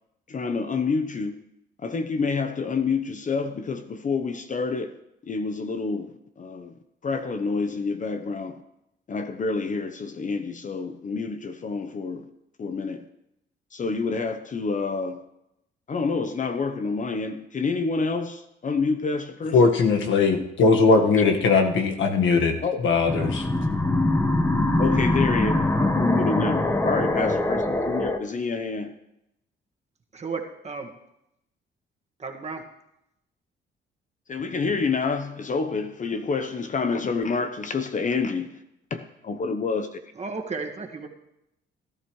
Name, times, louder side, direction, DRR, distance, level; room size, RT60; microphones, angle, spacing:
voice 1, 0.3-1.4 1.8-5.0 5.3-6.7 7.0-8.6 9.1-12.3 12.6-13.0 13.7-15.2 15.9-19.6 22.6-22.8 24.8-28.9 34.3-38.6 38.9-40.0, left 4 dB, 40° left, 0.9 m, -28 dB
voice 2, 19.5-22.6 22.8-23.5, left 4 dB, 75° left, 1.6 m, -19 dB
sound 1, 23.1-28.2, left 1 dB, 10° left, 1.2 m, -23 dB
voice 3, 30.1-30.9 32.2-32.6 40.2-41.1, right 4 dB, 35° right, 1.9 m, -33 dB
17.0 x 12.0 x 3.2 m
cardioid pair, 90°, 20 cm